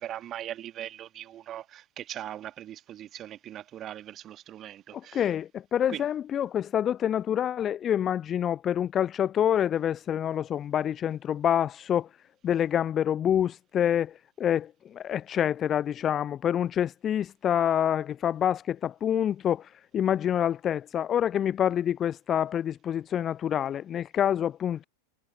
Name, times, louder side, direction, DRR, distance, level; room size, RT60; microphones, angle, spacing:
voice 1, 0.0-5.2 5.9-6.0, right 11 dB, 30° right, 1.3 m, -40 dB
voice 2, 4.9-12.1 12.4-24.9, left 9 dB, 25° left, 0.3 m, -27 dB
figure-of-eight pair, 90°, 0 cm